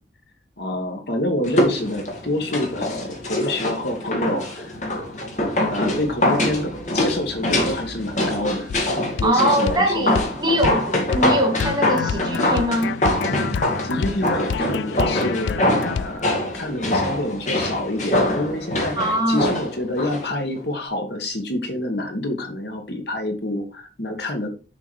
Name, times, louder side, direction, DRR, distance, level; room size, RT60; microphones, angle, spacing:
voice 1, 0.6-4.8 5.7-8.7 9.2-10.1 13.8-24.5, left 1 dB, 65° left, 1.8 m, -27 dB
sound 1, 1.4-20.3 20.6-20.7, left 1 dB, 45° left, 2.2 m, -24 dB
sound 2, 8.7-8.9 9.2-9.4 9.7-9.8 10.1-10.3 10.6-10.8 11.1-11.3 11.6-16.2, left 6 dB, 85° left, 0.3 m, -28 dB
voice 2, 9.2-13.0 19.0-19.5, right 1 dB, 25° right, 2.3 m, -22 dB
6.9 x 5.9 x 4.7 m
head